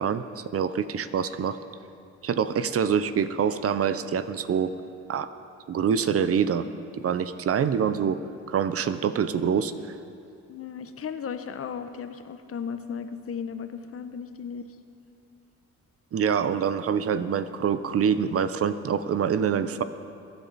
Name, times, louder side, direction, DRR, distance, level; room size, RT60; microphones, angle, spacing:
voice 1, 0.0-1.6 2.2-4.7 5.1-5.3 5.7-6.7 6.9-8.2 8.5-9.7 16.1-19.8, right 7 dB, 50° right, 12 dB, 0.7 m, -25 dB
voice 2, 10.5-14.7, left 7 dB, 50° left, 9 dB, 0.9 m, -35 dB
22.0 x 10.5 x 4.1 m, 2.6 s
cardioid pair, 90°, 30 cm